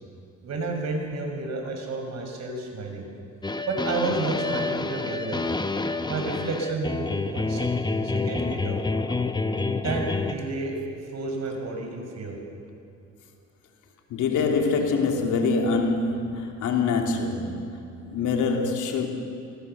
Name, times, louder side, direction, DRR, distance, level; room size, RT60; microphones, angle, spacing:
voice 1, 0.4-3.1 3.7-5.5 6.1-7.7 8.0-8.8 9.8-10.8 11.1-12.4, right 3 dB, 60° right, 5.8 m, -31 dB
sound 1, 3.4-10.3, left 3 dB, 15° left, 1.0 m, -28 dB
voice 2, 14.1-17.8 18.1-19.1, left 4 dB, 80° left, 3.0 m, -25 dB
28.5 x 19.5 x 6.9 m
cardioid pair, 90°, 30 cm